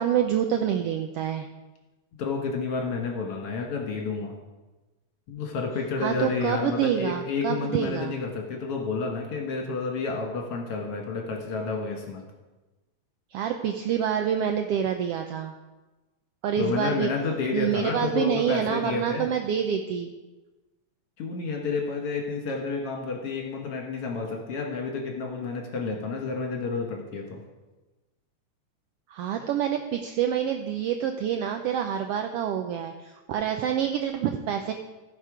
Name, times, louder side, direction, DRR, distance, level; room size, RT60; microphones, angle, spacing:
voice 1, 0.0-1.5 6.0-8.2 13.3-15.5 16.4-17.1 17.5-20.1 29.1-34.7, right 9 dB, 90° right, 5 dB, 1.3 m, -27 dB
voice 2, 2.2-4.3 5.3-12.3 16.6-19.3 21.2-27.4, left 4 dB, 60° left, 1 dB, 2.2 m, -30 dB
15.5 x 5.2 x 4.9 m, 1.1 s
omnidirectional pair, 3.3 m